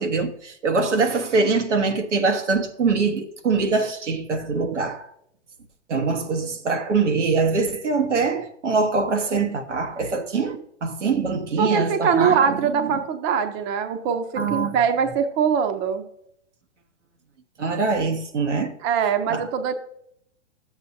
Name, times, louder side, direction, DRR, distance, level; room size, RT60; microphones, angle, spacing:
voice 1, 0.0-5.1 5.9-13.0 14.3-14.8 17.6-18.7 19.3-19.5, right 4 dB, 85° right, 1.4 m, -23 dB
voice 2, 11.6-16.0 18.8-19.7, right 7 dB, 35° right, 0.8 m, -22 dB
12.0 x 8.0 x 2.7 m
hypercardioid pair, 120°, 35 cm